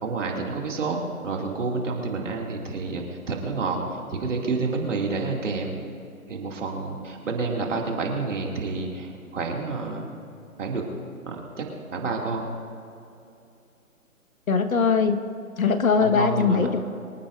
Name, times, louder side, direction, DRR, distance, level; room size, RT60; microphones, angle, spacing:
voice 1, 0.0-5.8 6.3-10.1 10.6-10.8 11.3-12.5 16.0-16.8, right 4 dB, 55° right, 0 dB, 2.6 m, -29 dB
voice 2, 14.5-15.2 15.6-16.8, left 5 dB, 70° left, 7 dB, 1.6 m, -21 dB
25.0 x 14.5 x 2.6 m, 2.7 s
figure-of-eight pair, 150°, 43 cm